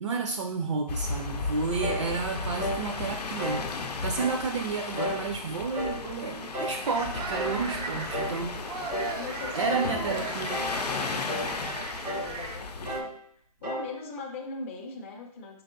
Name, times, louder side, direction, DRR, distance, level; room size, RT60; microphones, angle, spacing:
voice 1, 0.0-3.6 4.0-8.6 9.5-10.5, right 4 dB, 50° right, 4 dB, 0.4 m, -31 dB
sound 1, 0.9-13.0, left 4 dB, 85° left, 0.6 m, -35 dB
sound 2, 1.8-2.1 2.6-2.9 3.4-3.7 4.2-4.4 5.0-5.3 5.7-6.0 6.5-6.8 7.3-7.6 8.1-8.4 8.9-9.2 9.7-10.0 10.5-10.8 11.3-11.5 12.0-12.3 12.8-13.1 13.6-13.9, equal, 90° right, 1.6 m, -33 dB
sound 3, 6.9-12.6, right 4 dB, 75° right, 0.7 m, -38 dB
voice 2, 8.1-8.6 9.1-10.3 10.7-13.1 13.6-15.6, left 3 dB, 20° left, 2 dB, 0.4 m, -41 dB
4.5 x 3.0 x 2.5 m, 0.62 s
hypercardioid pair, 155°, 20 cm